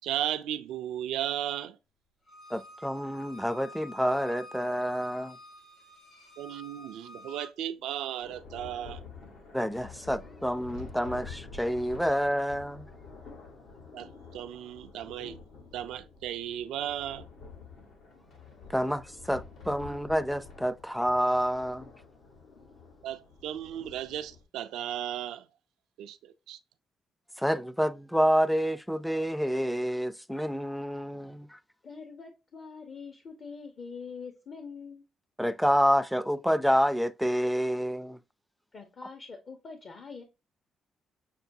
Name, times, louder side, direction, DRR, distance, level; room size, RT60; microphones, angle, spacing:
voice 1, 0.0-1.8 6.4-9.0 13.9-15.4 15.7-17.3 23.0-25.5 26.0-26.6, right 11 dB, 90° right, 0.3 m, -35 dB
Bowed string instrument, 2.3-7.5, equal, 65° left, 1.9 m, -49 dB
voice 2, 2.5-5.4 9.5-12.9 18.7-21.9 27.4-31.6 35.4-38.2, equal, ahead, 0.3 m, -28 dB
Thunder, 8.2-24.4, left 4 dB, 85° left, 1.2 m, -48 dB
voice 3, 31.8-35.0 38.7-40.2, left 5 dB, 50° left, 0.7 m, -44 dB
6.5 x 2.2 x 2.6 m
cardioid pair, 90°, 0 cm